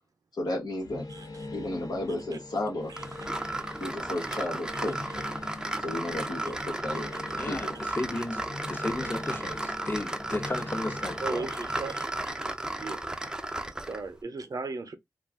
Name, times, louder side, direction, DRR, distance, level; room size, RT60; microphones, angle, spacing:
voice 1, 0.4-1.0 1.5-2.9 3.8-5.1 5.8-7.1 7.4-7.8 11.2-11.5, left 1 dB, 85° left, 1.1 m, -33 dB
sound 1, 0.8-12.1, left 2 dB, 65° left, 0.8 m, -43 dB
sound 2, 3.0-14.1, right 1 dB, 10° right, 0.4 m, -34 dB
voice 2, 7.3-11.2, left 2 dB, 30° left, 0.7 m, -34 dB
voice 3, 11.2-12.1 12.8-13.0 13.9-14.9, right 3 dB, 60° right, 0.6 m, -36 dB
2.3 x 2.3 x 3.5 m
wide cardioid pair, 65°, 7 cm